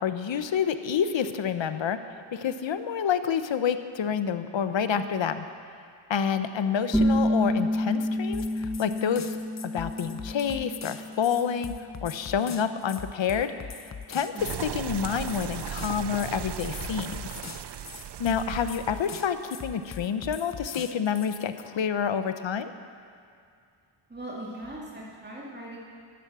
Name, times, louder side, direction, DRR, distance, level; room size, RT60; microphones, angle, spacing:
voice 1, 0.0-2.0 2.3-5.5 6.1-9.3 9.6-11.7 12.0-13.5 14.1-14.3 14.6-17.4 18.2-22.7, left 7 dB, 70° left, 10 dB, 0.8 m, -28 dB
sound 1, 6.9-12.3, equal, ahead, 1.1 m, -29 dB
sound 2, 8.3-21.5, left 6 dB, 35° left, 0.7 m, -42 dB
voice 2, 14.3-14.7 24.1-25.8, right 1 dB, 20° right, -5 dB, 2.4 m, -40 dB
sound 3, 14.4-19.8, right 10 dB, 60° right, 0.6 m, -37 dB
12.5 x 10.5 x 7.5 m, 2.4 s
wide cardioid pair, 85°, 48 cm